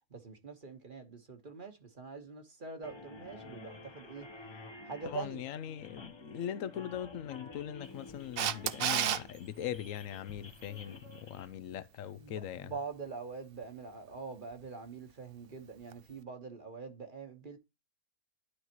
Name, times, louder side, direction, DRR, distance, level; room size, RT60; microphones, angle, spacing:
voice 1, 0.1-4.3 4.8-5.4 12.0-17.6, right 5 dB, 35° right, 1.3 m, -44 dB
sound 1, 2.8-11.5, left 2 dB, 25° left, 0.6 m, -51 dB
voice 2, 5.1-12.7, left 10 dB, 70° left, 0.9 m, -40 dB
Camera, 8.4-9.2 15.9-16.0, right 10 dB, 65° right, 0.5 m, -30 dB
12.0 x 4.0 x 2.9 m
omnidirectional pair, 1.5 m